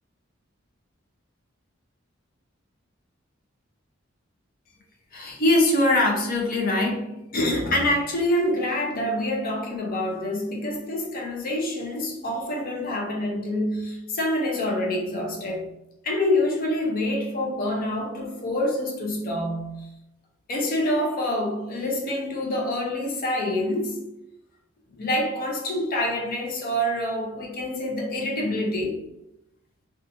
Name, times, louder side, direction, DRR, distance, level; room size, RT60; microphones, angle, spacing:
voice 1, 5.1-15.7 16.0-19.9 20.5-24.0 25.0-29.0, left 1 dB, 45° left, 0.6 m, -26 dB
2.4 x 2.4 x 2.7 m
head